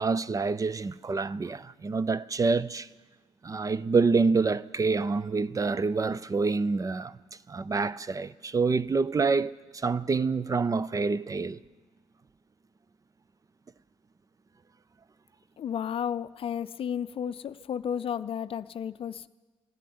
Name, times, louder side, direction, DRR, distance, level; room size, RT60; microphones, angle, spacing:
voice 1, 0.0-2.9 3.4-7.2 7.5-11.6, right 4 dB, 30° right, 0.5 m, -27 dB
voice 2, 15.6-19.3, left 8 dB, 50° left, 0.5 m, -33 dB
14.5 x 10.5 x 9.4 m
supercardioid pair, 60°, 12 cm